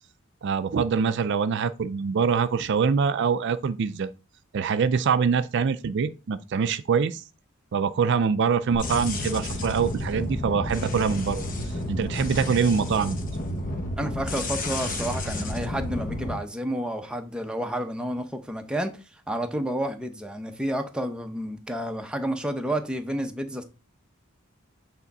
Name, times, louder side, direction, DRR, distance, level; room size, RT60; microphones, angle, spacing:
voice 1, 0.4-4.1 4.5-7.2 7.7-11.4 11.9-13.2, right 6 dB, 55° right, 0.4 m, -24 dB
sound 1, 8.7-16.4, left 1 dB, 40° left, 0.9 m, -31 dB
voice 2, 14.0-18.9 19.3-23.6, right 1 dB, 5° right, 0.7 m, -30 dB
8.2 x 3.5 x 4.1 m
head